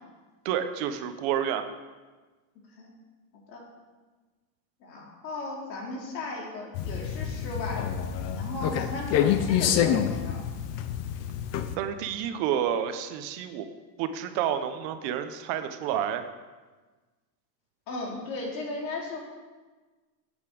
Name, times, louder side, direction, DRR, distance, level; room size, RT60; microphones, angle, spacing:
voice 1, 0.4-1.7 11.8-13.7 14.0-16.2, right 9 dB, 50° right, 9 dB, 1.1 m, -29 dB
voice 2, 4.8-7.9 8.3-10.5 17.9-19.2, left 2 dB, 90° left, -2 dB, 3.8 m, -36 dB
sound 1, 6.7-11.8, left 9 dB, 30° left, 0.7 m, -27 dB
8.4 x 8.3 x 8.7 m, 1.3 s
supercardioid pair, 145°, 50 cm